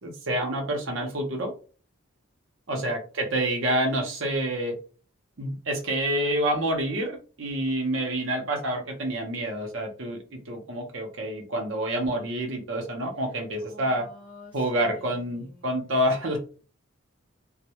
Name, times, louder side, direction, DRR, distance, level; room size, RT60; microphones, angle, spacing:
voice 1, 0.0-1.5 2.7-4.7 5.4-14.1 14.5-16.4, right 1 dB, 65° right, 2 dB, 0.7 m, -28 dB
voice 2, 13.6-15.8, left 1 dB, 20° right, -6 dB, 0.7 m, -49 dB
2.1 x 2.0 x 2.8 m, 0.38 s
head